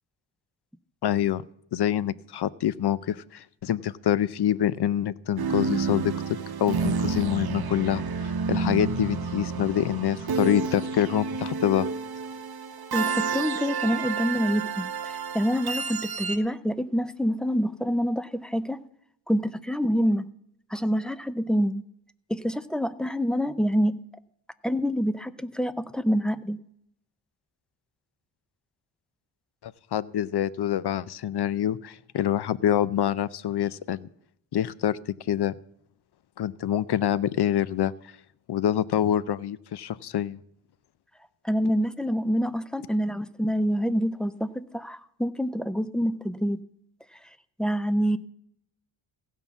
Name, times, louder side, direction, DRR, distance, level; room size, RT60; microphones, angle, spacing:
voice 1, 1.0-1.4 1.7-8.0 8.5-11.9 29.6-34.1 34.5-35.0 35.3-35.5 36.4-37.9 38.5-40.4, left 10 dB, 55° left, 19 dB, 0.6 m, -26 dB
sound 1, 5.4-16.4, right 5 dB, 50° right, 0.9 m, -30 dB
voice 2, 12.9-18.8 19.3-20.3 20.7-21.8 22.3-24.0 24.6-26.6 41.4-46.6 47.6-48.2, equal, ahead, 14 dB, 0.5 m, -26 dB
16.0 x 5.6 x 7.0 m, 0.73 s
cardioid pair, 95°, 47 cm